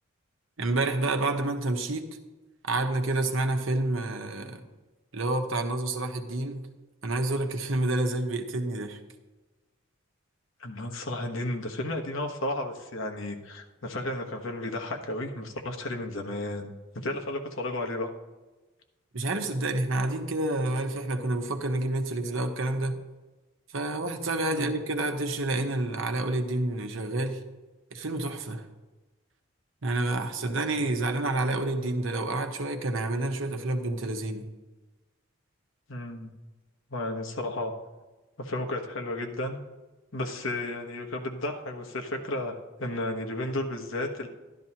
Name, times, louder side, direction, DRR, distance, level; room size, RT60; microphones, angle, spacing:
voice 1, 0.6-2.1 2.7-4.7 5.1-6.6 7.0-9.0 19.1-23.0 23.7-27.4 27.9-28.7 29.8-34.5, right 2 dB, 70° right, 6 dB, 1.0 m, -29 dB
voice 2, 10.6-18.1 24.5-24.7 35.9-36.3 36.9-37.7 38.4-39.6 40.1-44.3, left 1 dB, 70° left, 3 dB, 1.1 m, -33 dB
12.0 x 11.5 x 2.9 m, 1.2 s
head